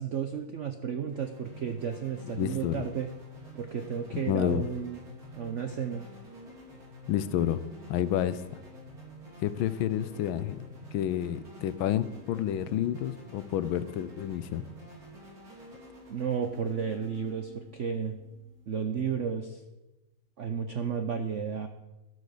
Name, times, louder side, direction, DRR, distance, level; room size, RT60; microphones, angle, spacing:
voice 1, 0.0-3.1 3.5-5.0 5.4-6.1 16.1-18.2 18.7-19.6 20.4-21.7, right 7 dB, 90° right, 7 dB, 0.6 m, -33 dB
sound 1, 1.0-18.7, equal, 45° right, 3.7 m, -49 dB
voice 2, 2.4-2.8 4.1-4.6 7.1-7.6 7.9-8.4 9.4-10.6 10.9-14.6, left 11 dB, 80° left, 15 dB, 1.4 m, -29 dB
12.5 x 8.2 x 6.7 m, 1.1 s
omnidirectional pair, 2.3 m